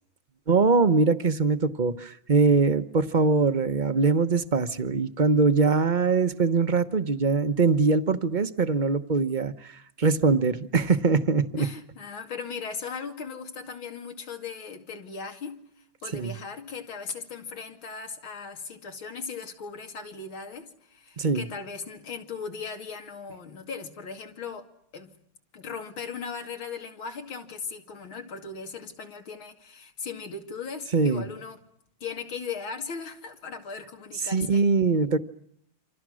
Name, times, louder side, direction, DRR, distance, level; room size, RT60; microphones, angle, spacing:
voice 1, 0.5-11.7 16.1-16.3 21.2-21.4 30.9-31.2 34.3-35.2, right 4 dB, 35° right, 0.8 m, -22 dB
voice 2, 11.6-15.6 16.0-24.7 24.9-25.1 25.5-31.6 32.0-34.6, left 5 dB, 85° left, 3.3 m, -38 dB
28.5 x 26.0 x 6.3 m
omnidirectional pair, 2.1 m